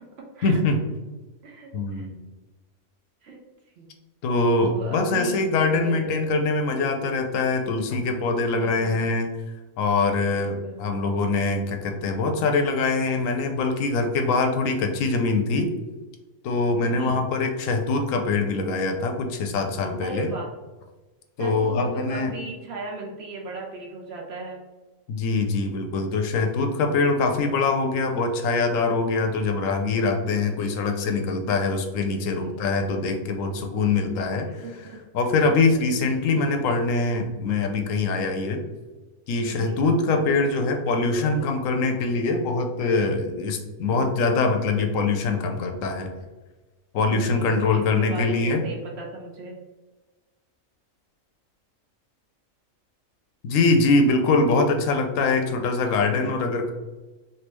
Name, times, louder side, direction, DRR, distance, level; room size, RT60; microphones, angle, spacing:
voice 1, 0.4-0.8 1.7-2.2 4.2-9.3 9.8-15.7 16.4-20.3 21.4-22.3 25.1-34.5 35.1-38.6 39.3-46.1 46.9-48.6 53.4-56.7, left 3 dB, 75° left, 4 dB, 0.9 m, -23 dB
voice 2, 1.4-2.1 3.2-3.4 3.8-3.9 4.6-5.4 5.8-6.0 8.0-9.1 10.3-10.9 16.8-17.2 20.0-20.5 21.4-24.6 32.2-32.6 34.5-35.0 39.5-39.8 47.1-49.6, right 3 dB, 60° right, 0 dB, 0.7 m, -37 dB
3.4 x 2.6 x 3.0 m, 1.2 s
omnidirectional pair, 1.4 m